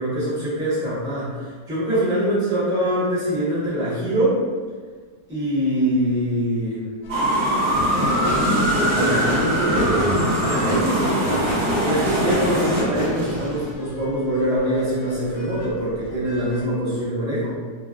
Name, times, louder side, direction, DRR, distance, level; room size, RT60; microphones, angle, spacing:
voice 1, 0.0-4.4 5.3-6.8 8.8-10.2 10.4-11.2 11.8-17.6, right 1 dB, 5° right, -11 dB, 0.7 m, -24 dB
sound 1, 7.0-16.7, left 1 dB, 75° left, 1.1 m, -38 dB
sound 2, 7.1-12.8, equal, 55° right, 0.8 m, -22 dB
sound 3, 7.7-13.8, equal, 85° right, 1.4 m, -27 dB
2.8 x 2.5 x 2.4 m, 1.6 s
omnidirectional pair, 1.9 m